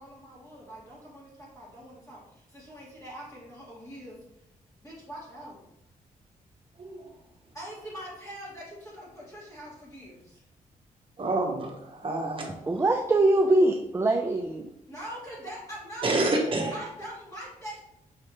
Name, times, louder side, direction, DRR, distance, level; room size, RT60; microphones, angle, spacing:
voice 1, 0.0-4.2 4.8-5.6 7.5-10.4 14.9-16.1 16.7-17.8, right 1 dB, 25° left, -7 dB, 1.9 m, -43 dB
voice 2, 11.2-12.5 16.0-16.9, right 2 dB, 40° right, 1 dB, 1.0 m, -28 dB
voice 3, 12.7-14.7, right 2 dB, 20° right, 3 dB, 0.4 m, -23 dB
5.7 x 3.2 x 2.9 m, 0.77 s
cardioid pair, 110°, 14 cm